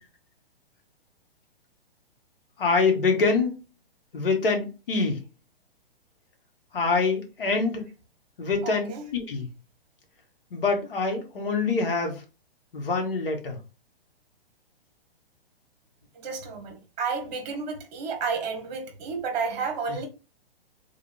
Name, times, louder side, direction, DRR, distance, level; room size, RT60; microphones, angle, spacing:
voice 1, 2.6-3.6 4.1-5.2 6.7-7.9 8.4-9.5 10.5-12.2 12.7-13.6 19.9-20.0, left 4 dB, 65° left, 1.8 m, -25 dB
voice 2, 8.6-9.1 16.1-20.1, right 5 dB, 45° right, 1.7 m, -31 dB
3.7 x 3.3 x 4.4 m
figure-of-eight pair, 120°, 30 cm